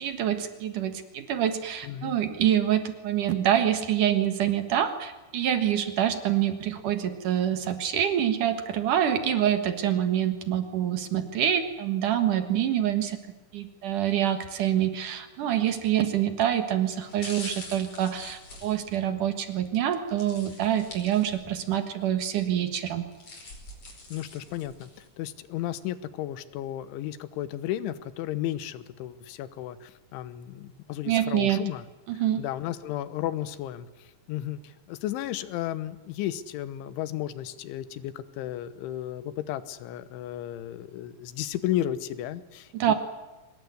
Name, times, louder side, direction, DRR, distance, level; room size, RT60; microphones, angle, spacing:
voice 1, 0.0-13.2 13.5-23.1 31.1-31.6 32.2-32.4 42.7-42.9, right 10 dB, 60° right, 8 dB, 2.4 m, -26 dB
voice 2, 1.8-2.2 24.1-31.9 32.2-42.9, left 12 dB, 85° left, 14 dB, 3.5 m, -34 dB
sound 1, 16.0-16.3 16.9-19.5 20.2-21.6 22.0-22.1 22.9-25.1 25.6-25.7, left 2 dB, 30° left, 5.4 m, -44 dB
24.0 x 20.0 x 9.6 m, 1.1 s
omnidirectional pair, 5.3 m